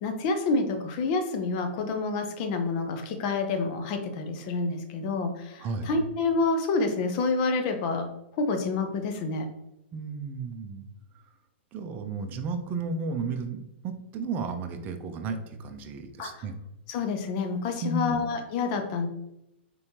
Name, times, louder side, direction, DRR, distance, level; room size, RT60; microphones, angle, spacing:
voice 1, 0.0-8.1 8.4-9.5 16.2-16.4 16.9-19.1, left 3 dB, 45° left, 6 dB, 0.8 m, -28 dB
voice 2, 5.6-5.9 9.9-10.8 11.7-16.5 17.8-18.2, right 3 dB, 30° right, 6 dB, 0.6 m, -33 dB
4.2 x 3.4 x 2.9 m, 0.85 s
hypercardioid pair, 125°, 6 cm